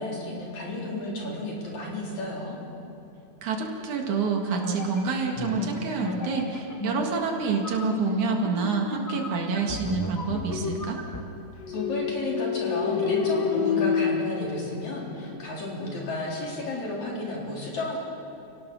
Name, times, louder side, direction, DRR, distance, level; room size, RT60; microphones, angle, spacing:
voice 1, 0.0-2.6 11.7-18.0, left 1 dB, 75° left, -3 dB, 5.4 m, -32 dB
voice 2, 3.4-11.0, right 4 dB, 80° right, 1 dB, 3.3 m, -27 dB
sound 1, 4.6-11.2, left 1 dB, 15° left, 0.5 m, -34 dB
sound 2, 11.6-15.4, left 7 dB, 45° left, 1.6 m, -27 dB
29.5 x 18.0 x 6.3 m, 2.9 s
omnidirectional pair, 3.3 m